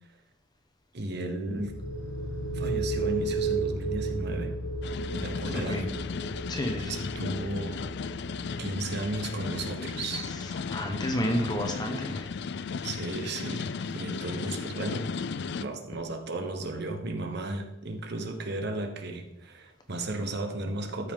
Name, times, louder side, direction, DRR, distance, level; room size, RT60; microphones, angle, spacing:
voice 1, 0.9-1.7 2.5-4.6 5.2-5.8 6.8-8.1 8.6-10.3 12.8-15.1 15.6-21.1, right 2 dB, 60° right, 5 dB, 1.2 m, -34 dB
sound 1, 1.5-13.0, right 2 dB, 80° left, 1.0 m, -35 dB
sound 2, 4.8-15.6, left 5 dB, 60° left, 0.4 m, -35 dB
voice 2, 5.5-5.9 6.5-7.0 10.3-12.3, equal, 20° left, 3 dB, 1.0 m, -31 dB
13.0 x 5.5 x 3.8 m, 0.89 s
head